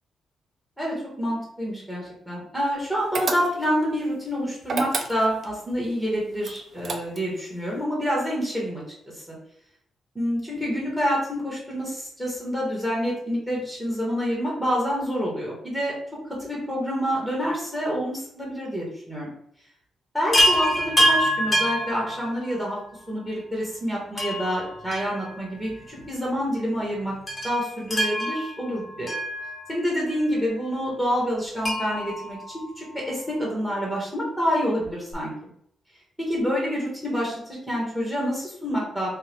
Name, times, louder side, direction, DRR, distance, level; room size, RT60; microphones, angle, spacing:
voice 1, 0.8-8.8 9.1-9.4 10.1-15.9 16.4-19.3 20.1-22.8 23.1-27.1 27.4-29.1 29.7-32.4 32.8-35.3 36.2-39.2, equal, ahead, -3 dB, 1.3 m, -27 dB
sound 1, 3.1-3.8 4.6-5.5 6.4-7.4, right 4 dB, 45° right, 0.5 m, -30 dB
Chime, 20.3-22.8 24.2-25.7 26.0-26.1 27.3-30.0 31.6-33.2 34.8-34.9 35.1-35.2, equal, 25° left, 0.9 m, -26 dB
4.4 x 2.4 x 3.5 m, 0.69 s
wide cardioid pair, 160°, 0 cm